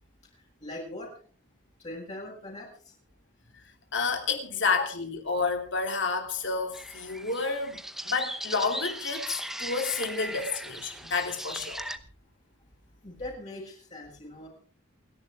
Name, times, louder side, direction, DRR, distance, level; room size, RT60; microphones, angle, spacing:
voice 1, 0.3-1.1 1.8-2.7 13.0-14.5, left 1 dB, 35° left, 6.6 m, -41 dB
voice 2, 3.9-11.8, left 4 dB, 65° left, 3.2 m, -30 dB
sound 1, 6.7-12.0, right 1 dB, ahead, 0.9 m, -38 dB
28.5 x 11.0 x 3.6 m
head